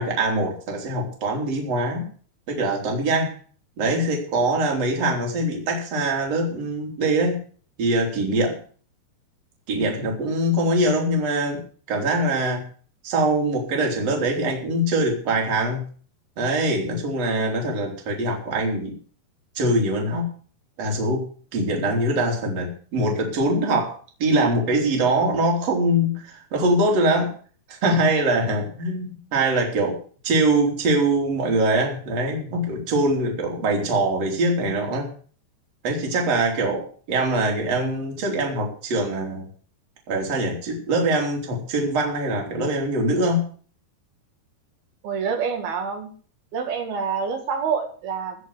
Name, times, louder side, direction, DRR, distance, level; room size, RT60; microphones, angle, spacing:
voice 1, 0.0-2.1 2.5-3.4 3.8-7.4 7.8-8.6 9.7-11.6 11.9-12.6 13.0-15.8 16.4-19.0 19.6-20.3 20.8-21.3 21.5-23.9 24.2-27.3 27.7-30.0 30.2-35.1 35.8-39.5 40.1-43.4, right 1 dB, 40° right, 0 dB, 4.0 m, -23 dB
voice 2, 45.0-46.1 46.5-48.4, right 6 dB, 65° right, 5 dB, 3.9 m, -27 dB
16.0 x 6.3 x 7.9 m, 0.43 s
omnidirectional pair, 5.0 m